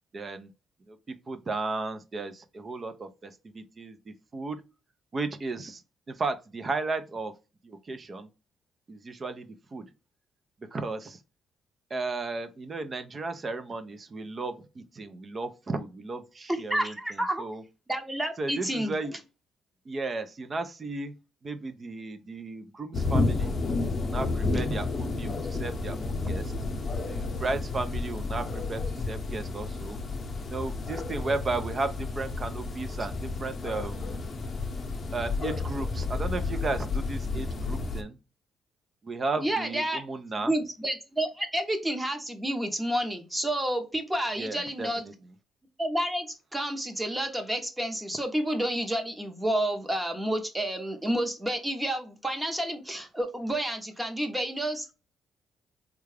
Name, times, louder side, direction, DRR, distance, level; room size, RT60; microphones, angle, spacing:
voice 1, 0.1-0.5 0.9-1.0 1.3-4.6 5.1-5.8 6.1-7.3 7.6-8.3 8.9-9.9 10.7-11.2 11.9-17.6 18.4-19.2 19.9-21.1 21.4-23.5 24.0-26.5 27.1-30.0 30.4-34.3 35.1-38.2 39.0-40.5 44.4-45.1, right 3 dB, 35° right, 0.6 m, -34 dB
voice 2, 16.5-17.4 17.9-19.0 39.4-40.0 40.4-45.0 45.8-54.9, right 1 dB, 15° right, 0.8 m, -30 dB
sound 1, 22.9-38.0, left 3 dB, 40° left, 0.7 m, -31 dB
3.6 x 2.3 x 3.3 m
cardioid pair, 90°, 0 cm